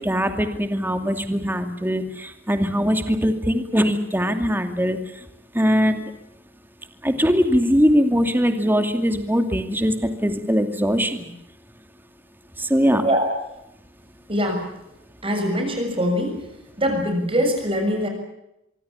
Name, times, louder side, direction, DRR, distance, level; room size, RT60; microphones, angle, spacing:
voice 1, 0.0-5.0 5.5-6.1 7.0-11.3 12.6-13.0, equal, 10° right, 7 dB, 2.5 m, -21 dB
voice 2, 14.3-14.6 15.2-16.3 16.8-18.1, equal, 25° right, 4 dB, 6.8 m, -22 dB
25.0 x 24.0 x 7.2 m, 0.85 s
head